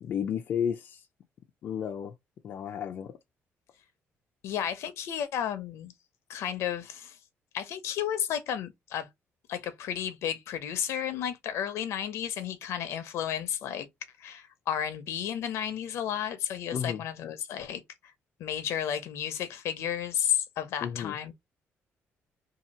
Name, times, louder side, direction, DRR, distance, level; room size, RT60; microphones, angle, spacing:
voice 1, 0.0-1.1 1.6-2.1 2.4-3.1 16.7-17.0 20.8-21.2, left 8 dB, 50° left, 0.4 m, -32 dB
voice 2, 4.4-5.9 6.3-7.2 7.5-9.1 9.5-13.9 14.2-18.1 18.4-21.3, left 9 dB, 75° left, 0.8 m, -32 dB
2.8 x 2.7 x 4.1 m
cardioid pair, 175°, 5 cm